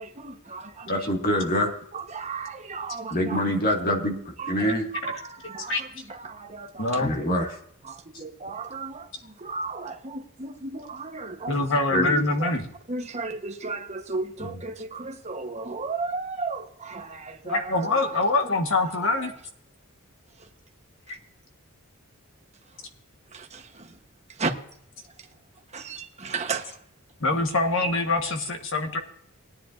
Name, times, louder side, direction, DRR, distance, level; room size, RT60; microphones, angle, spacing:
voice 1, 0.0-1.1 1.6-3.4 4.4-7.1 7.8-11.7 12.4-12.5 12.9-19.4 20.3-20.5 21.1-21.2 22.7-22.9 23.3-24.0 24.3-24.5 25.0-25.3 25.7-26.9, right 4 dB, 30° right, 1.2 m, -35 dB
voice 2, 0.9-1.7 3.1-4.9 7.0-7.5 11.9-12.2, equal, 45° left, 2.1 m, -25 dB
voice 3, 6.8-7.1 11.5-12.6 17.5-19.3 21.1-21.2 27.2-29.0, left 2 dB, 65° left, 1.4 m, -24 dB
20.0 x 10.0 x 2.6 m
head